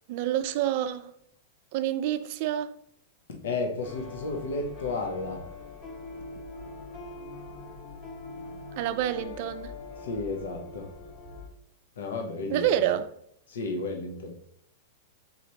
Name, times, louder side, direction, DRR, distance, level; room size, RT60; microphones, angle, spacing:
voice 1, 0.1-1.1 1.7-2.8 8.8-9.7 12.5-13.1, right 11 dB, 50° right, 0.4 m, -28 dB
voice 2, 3.3-5.5 10.0-10.9 12.0-12.7 13.5-14.4, left 3 dB, 80° left, 0.8 m, -33 dB
sound 1, 3.8-11.5, left 3 dB, 30° left, 1.0 m, -43 dB
4.1 x 3.1 x 2.8 m
hypercardioid pair, 135°, 0 cm